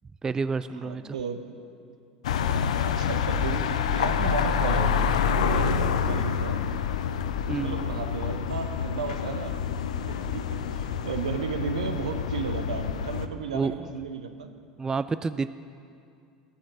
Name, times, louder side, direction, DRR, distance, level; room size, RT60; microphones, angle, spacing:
voice 1, 0.2-1.2 7.5-7.8 13.5-13.9 14.8-15.5, right 4 dB, 15° right, 13 dB, 0.3 m, -29 dB
voice 2, 0.8-1.7 2.9-5.1 5.4-6.6 7.4-9.5 10.1-14.5, right 6 dB, 75° right, 7 dB, 0.8 m, -34 dB
sound 1, 2.2-13.3, left 7 dB, 70° left, 0.5 m, -27 dB
14.0 x 7.2 x 6.0 m, 2.4 s
figure-of-eight pair, 75°, 4 cm